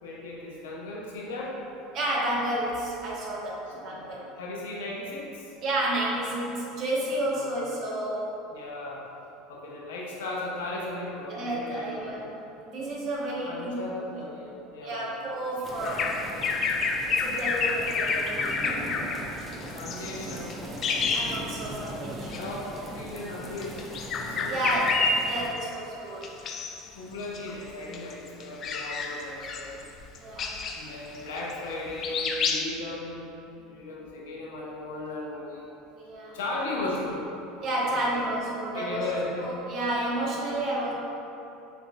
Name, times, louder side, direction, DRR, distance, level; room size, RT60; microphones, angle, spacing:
voice 1, 0.0-1.6 3.8-5.5 7.3-7.5 8.5-9.0 9.5-12.2 13.4-15.2 15.7-15.8 16.3-16.5 19.7-20.6 22.3-24.8 26.9-29.8 30.8-33.2 33.5-35.7 36.3-37.3 37.9-38.3 38.7-39.5, left 2 dB, 90° left, -4 dB, 0.8 m, -36 dB
voice 2, 1.9-4.3 5.6-8.4 11.3-13.8 14.8-16.2 17.1-18.4 21.1-22.4 24.5-26.3 30.2-30.5 36.0-36.4 37.6-39.0 39.4-40.9, right 1 dB, 50° right, -4 dB, 1.0 m, -31 dB
sound 1, 15.6-25.5, right 1 dB, 15° right, 0.5 m, -40 dB
Bird vocalization bird call bird song, 15.8-21.9 22.2-22.4 23.5-25.8 26.2-26.9 27.2-32.6, left 4 dB, 45° left, 0.3 m, -29 dB
6.5 x 2.6 x 2.2 m, 3.0 s
supercardioid pair, 105°, 0 cm